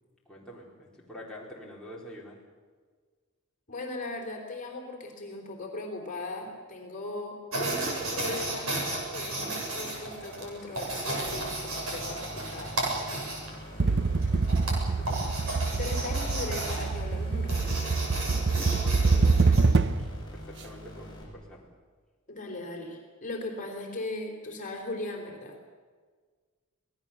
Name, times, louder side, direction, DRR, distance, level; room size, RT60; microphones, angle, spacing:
voice 1, 0.3-2.4 13.7-15.4 15.7-16.3 18.5-21.7, left 1 dB, 5° left, -5 dB, 4.1 m, -46 dB
voice 2, 3.7-8.8 9.1-12.7 15.8-17.8 22.3-25.6, left 2 dB, 35° left, 2 dB, 3.7 m, -38 dB
sound 1, 7.5-19.7, right 2 dB, 70° right, 7.5 m, -34 dB
sound 2, 11.3-21.2, equal, 20° left, 6.9 m, -44 dB
sound 3, 13.8-20.2, right 3 dB, 55° right, 0.8 m, -25 dB
26.0 x 19.0 x 7.0 m, 1.5 s
head